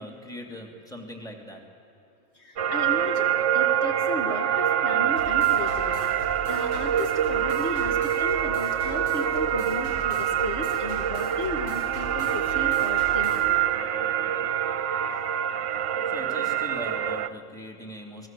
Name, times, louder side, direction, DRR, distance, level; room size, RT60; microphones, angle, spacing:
voice 1, 0.0-1.6 16.1-18.3, left 1 dB, 5° left, 2 dB, 2.7 m, -40 dB
voice 2, 2.4-6.1 6.5-13.7, left 2 dB, 55° left, 2 dB, 1.8 m, -35 dB
sound 1, 2.6-17.3, right 10 dB, 70° right, 1.0 m, -25 dB
sound 2, 5.2-13.5, right 3 dB, 80° left, 5.6 m, -41 dB
29.5 x 21.0 x 7.6 m, 2.7 s
omnidirectional pair, 1.4 m